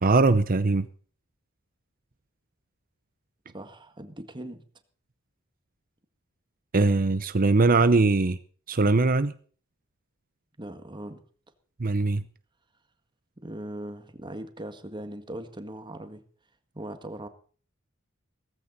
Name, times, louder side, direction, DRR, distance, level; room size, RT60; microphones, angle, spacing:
voice 1, 0.0-0.9 6.7-8.4 8.7-9.3 11.8-12.2, right 3 dB, 45° right, 13 dB, 0.7 m, -21 dB
voice 2, 3.5-4.6 10.6-11.2 13.4-16.2 16.7-17.3, right 1 dB, 25° right, 8 dB, 1.9 m, -39 dB
17.5 x 15.0 x 4.2 m, 0.43 s
head